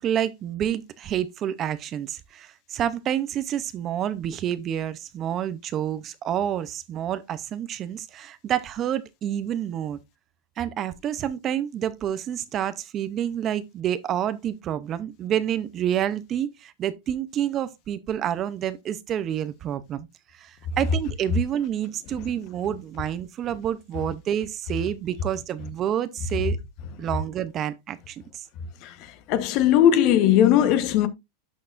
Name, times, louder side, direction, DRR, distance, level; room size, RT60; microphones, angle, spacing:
voice 1, 0.0-10.0 10.6-20.1 20.3-26.6 27.0-28.5, right 10 dB, 25° right, 0.6 m, -28 dB
voice 2, 29.3-31.1, left 11 dB, 40° left, 1.1 m, -18 dB
11.5 x 6.5 x 2.5 m
supercardioid pair, 160°, 0 cm